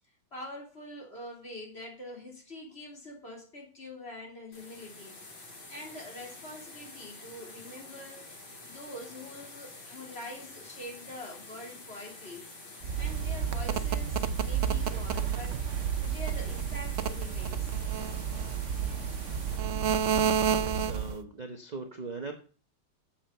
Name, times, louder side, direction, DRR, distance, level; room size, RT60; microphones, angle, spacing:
voice 1, 0.3-5.2 5.7-12.5 13.0-17.7, left 1 dB, 30° left, -1 dB, 3.5 m, -45 dB
Rushing Water with no wind, 4.5-19.6, left 3 dB, 70° left, 4.0 m, -48 dB
sound 1, 12.8-21.2, right 7 dB, 70° right, 0.7 m, -30 dB
voice 2, 20.5-22.3, right 3 dB, 35° right, 5 dB, 0.7 m, -40 dB
8.7 x 7.6 x 6.6 m, 0.39 s
omnidirectional pair, 2.2 m